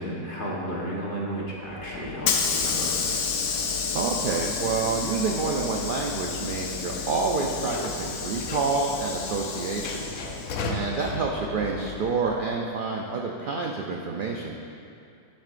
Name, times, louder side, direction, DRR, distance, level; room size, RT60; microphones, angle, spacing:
voice 1, 0.0-3.0, equal, 40° left, -5 dB, 1.3 m, -33 dB
Hiss / Sliding door, 1.5-12.4, left 5 dB, 85° left, 1.1 m, -31 dB
voice 2, 3.9-10.1 10.6-14.6, right 4 dB, 65° right, 0 dB, 0.5 m, -28 dB
11.0 x 6.0 x 2.5 m, 2.5 s
omnidirectional pair, 1.4 m